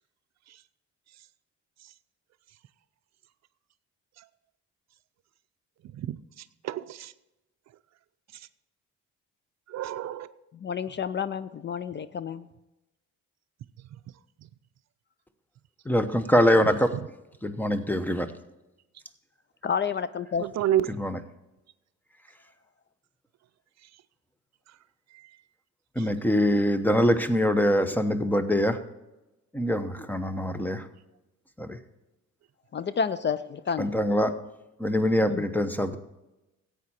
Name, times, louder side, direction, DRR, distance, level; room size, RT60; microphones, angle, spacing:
voice 1, 5.9-7.1 8.3-8.5 9.7-10.3 16.6-17.1 20.4-20.9 25.1-25.3 26.0-26.1, right 12 dB, 60° right, 0.5 m, -31 dB
voice 2, 10.5-12.5 19.6-20.4 32.7-33.9 35.2-35.4, left 6 dB, 40° left, 0.5 m, -30 dB
voice 3, 15.8-16.9 17.4-18.3 21.0-21.2 26.0-28.8 29.5-30.9 31.6-31.8 33.8-34.3 34.8-36.0, equal, 5° left, 0.9 m, -24 dB
14.0 x 8.6 x 4.3 m
cardioid pair, 90°, 30 cm